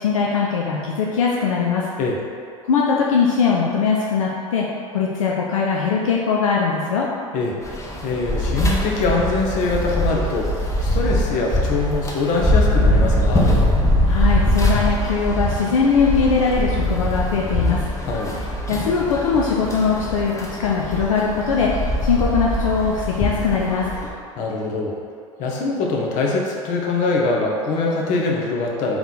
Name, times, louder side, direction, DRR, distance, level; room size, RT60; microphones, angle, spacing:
voice 1, 0.0-1.8 2.7-4.7 4.9-7.1 14.1-17.9 18.7-23.9, left 5 dB, 75° left, -3 dB, 0.4 m, -21 dB
sound 1, 7.6-24.1, left 1 dB, 15° left, 0.8 m, -22 dB
voice 2, 8.0-10.5 10.8-13.5 18.0-18.3 24.4-24.9 25.4-29.0, left 3 dB, 50° left, -1 dB, 0.8 m, -23 dB
3.4 x 3.0 x 3.9 m, 2.2 s
figure-of-eight pair, 75°, 17 cm